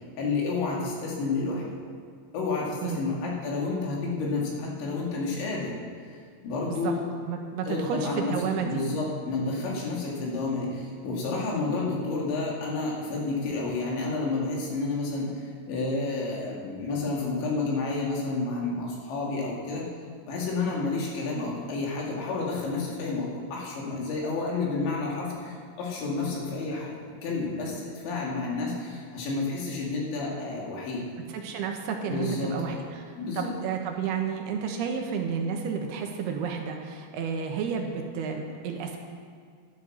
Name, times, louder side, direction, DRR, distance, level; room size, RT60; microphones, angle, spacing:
voice 1, 0.1-1.6 2.3-5.8 6.1-6.2 6.4-7.0 7.6-8.3 8.6-19.9 20.2-27.0 27.2-31.0 32.0-32.5 33.2-33.5, left 3 dB, 85° left, -3 dB, 4.8 m, -30 dB
voice 2, 7.3-8.8 31.3-39.0, right 6 dB, 70° right, 2 dB, 2.8 m, -31 dB
12.0 x 11.5 x 6.3 m, 2.1 s
omnidirectional pair, 5.1 m